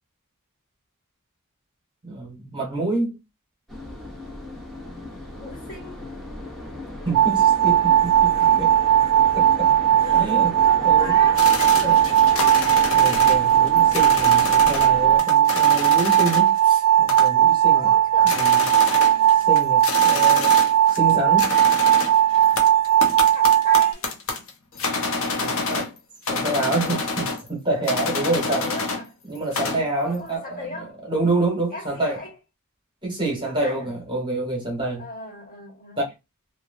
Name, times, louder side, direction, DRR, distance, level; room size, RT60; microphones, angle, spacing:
voice 1, 2.0-3.2 7.0-8.7 9.3-9.7 10.1-10.5 10.8-11.2 11.8-12.0 12.9-18.0 18.2-18.7 19.5-20.6 20.9-21.6 25.4-25.9 26.3-28.7 29.3-32.2 33.0-35.1 36.0-36.1, right 2 dB, 20° right, 1.1 m, -27 dB
sound 1, 3.7-15.2, left 1 dB, ahead, 0.7 m, -36 dB
voice 2, 5.3-6.0 10.0-12.6 17.7-19.5 23.3-24.1 26.5-27.0 28.3-29.0 30.0-31.0 31.7-32.3 33.4-33.9 35.0-36.0, left 2 dB, 40° left, 1.6 m, -38 dB
sound 2, 7.1-23.9, right 11 dB, 80° right, 0.3 m, -17 dB
sound 3, 11.3-14.9 15.2-16.6 17.1-17.5 17.9-18.0 18.2-21.1 21.4-26.0 26.2-27.5 27.8-29.0 29.3-29.9, left 3 dB, 65° left, 0.7 m, -28 dB
2.9 x 2.3 x 2.5 m
head